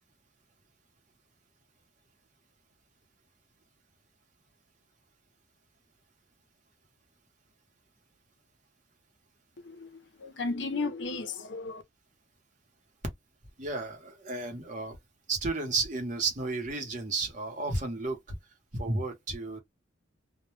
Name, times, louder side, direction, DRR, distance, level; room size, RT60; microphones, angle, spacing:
voice 1, 9.6-11.8, left 3 dB, 60° left, 0.6 m, -35 dB
voice 2, 13.6-15.0 15.3-18.4 18.7-19.6, right 3 dB, 40° right, 0.8 m, -32 dB
2.2 x 2.1 x 3.0 m
head